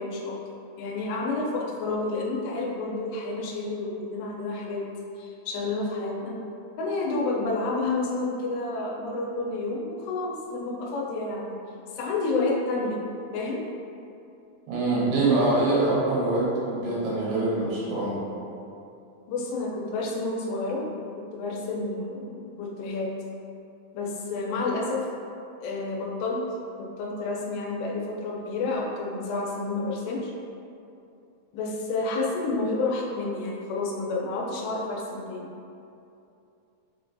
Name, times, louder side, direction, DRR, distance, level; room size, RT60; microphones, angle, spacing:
voice 1, 0.0-4.8 5.2-6.4 6.8-11.6 12.0-13.0 13.3-13.6 19.3-20.9 21.2-23.1 23.9-25.1 25.6-26.4 26.8-30.3 31.5-35.5, left 3 dB, 90° left, -2 dB, 2.7 m, -30 dB
voice 2, 14.7-16.4 16.7-18.2, right 2 dB, 80° right, -8 dB, 2.8 m, -24 dB
6.1 x 2.2 x 2.5 m, 2.7 s
omnidirectional pair, 4.7 m